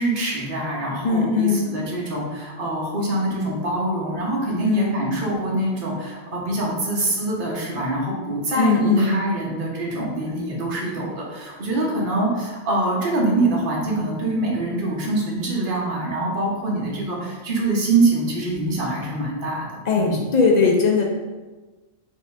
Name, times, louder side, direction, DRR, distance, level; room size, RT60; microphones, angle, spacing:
voice 1, 0.0-19.7 19.9-20.2, right 2 dB, 45° right, -3 dB, 1.1 m, -24 dB
voice 2, 1.0-1.7 4.6-5.0 8.6-9.2 19.9-21.0, left 4 dB, 55° left, 0 dB, 0.4 m, -19 dB
4.9 x 2.7 x 3.4 m, 1.3 s
omnidirectional pair, 1.4 m